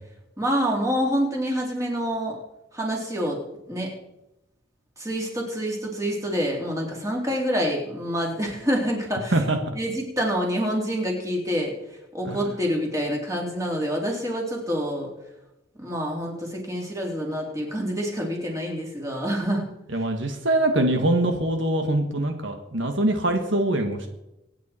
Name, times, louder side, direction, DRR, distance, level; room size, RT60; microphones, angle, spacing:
voice 1, 0.4-2.4 2.7-3.4 3.7-3.9 5.0-9.4 9.7-11.7 12.1-15.1 15.8-19.6 19.9-20.0, equal, 15° right, -1 dB, 3.3 m, -27 dB
voice 2, 19.9-24.1, right 1 dB, 70° right, 5 dB, 1.6 m, -23 dB
25.0 x 9.5 x 4.4 m, 0.91 s
head